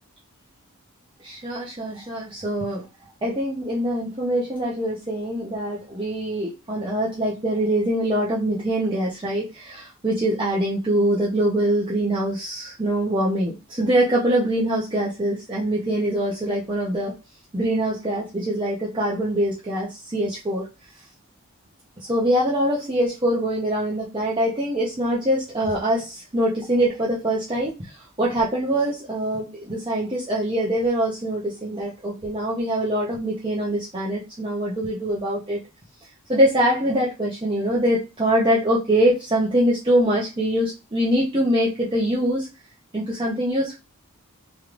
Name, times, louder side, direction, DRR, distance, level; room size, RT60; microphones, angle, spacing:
voice 1, 1.2-2.8 3.2-17.1 17.5-20.7 22.1-35.6 36.3-42.5 42.9-43.7, right 1 dB, 25° right, -6 dB, 0.8 m, -23 dB
3.2 x 3.1 x 2.5 m, 0.28 s
head